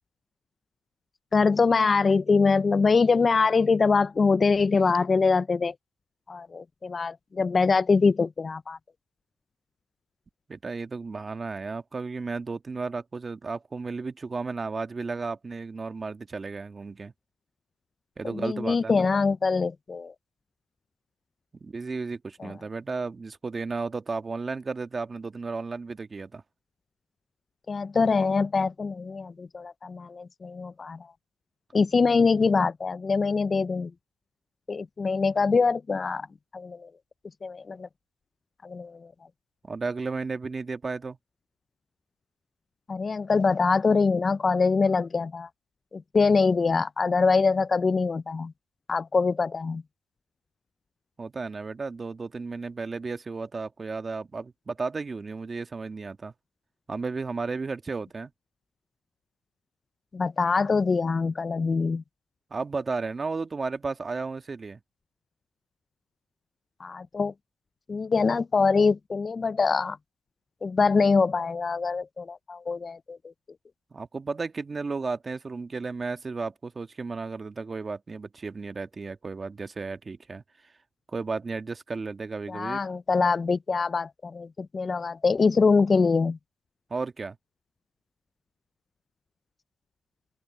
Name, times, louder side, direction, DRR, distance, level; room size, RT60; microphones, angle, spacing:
voice 1, 1.3-5.7 6.3-8.8 18.2-20.1 22.4-22.5 27.7-31.0 31.7-33.9 34.7-36.3 36.5-36.9 37.4-37.9 38.6-39.0 42.9-45.5 45.9-48.5 48.9-49.8 60.1-62.0 66.8-67.3 67.9-70.0 70.6-73.2 82.5-86.4, left 4 dB, 35° left, 0.3 m, -24 dB
voice 2, 10.5-17.1 18.2-19.1 21.6-26.4 39.6-41.2 51.2-56.3 56.9-58.3 62.5-64.8 73.9-80.4 81.1-82.8 86.9-87.4, right 4 dB, 30° right, 1.5 m, -33 dB
open air
cardioid pair, 90°, 0 cm